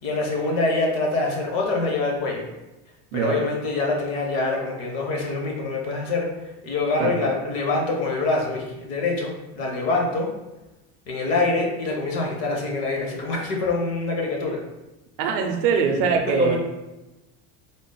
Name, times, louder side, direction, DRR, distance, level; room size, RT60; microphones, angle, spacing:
voice 1, 0.0-2.5 3.1-10.3 11.1-14.6 15.7-16.6, left 3 dB, 45° left, 0 dB, 0.8 m, -25 dB
voice 2, 15.2-16.6, right 6 dB, 55° right, 4 dB, 0.5 m, -22 dB
3.8 x 2.0 x 3.8 m, 1.0 s
cardioid pair, 175°, 33 cm